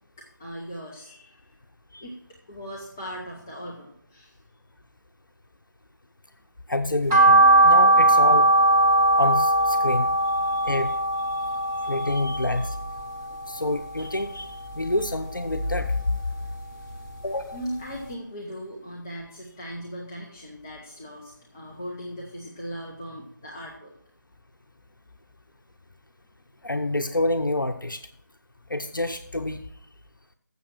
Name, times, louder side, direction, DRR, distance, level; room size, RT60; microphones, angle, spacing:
voice 1, 0.2-1.5 2.0-2.1 2.5-4.3 10.2-12.2 12.5-12.7 17.5-23.9, equal, 10° left, -2 dB, 0.5 m, -39 dB
voice 2, 6.7-8.5 9.2-10.1 10.6-10.9 11.8-12.8 13.5-16.2 17.2-17.6 26.6-28.0 28.7-29.6, left 2 dB, 85° left, 7 dB, 0.8 m, -27 dB
sound 1, 7.1-13.4 13.8-14.9 15.3-16.7 17.1-17.2 17.6-17.7 18.0-18.1, right 2 dB, 10° right, 0.8 m, -20 dB
7.2 x 7.0 x 6.4 m, 0.66 s
figure-of-eight pair, 160°, 11 cm